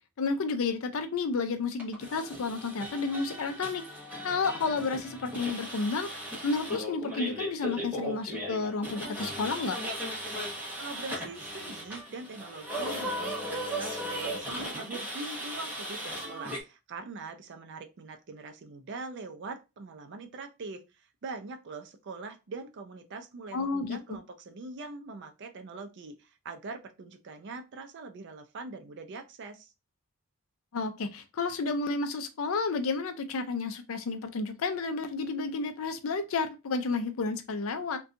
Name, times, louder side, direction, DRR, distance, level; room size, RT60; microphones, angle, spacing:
voice 1, 0.2-3.8 4.2-9.8 23.5-24.2 30.7-38.0, left 4 dB, 65° left, 0.4 m, -31 dB
sound 1, 1.8-16.6, equal, 5° right, 0.9 m, -37 dB
voice 2, 10.8-29.7, right 3 dB, 50° right, 0.4 m, -43 dB
2.6 x 2.2 x 2.5 m
head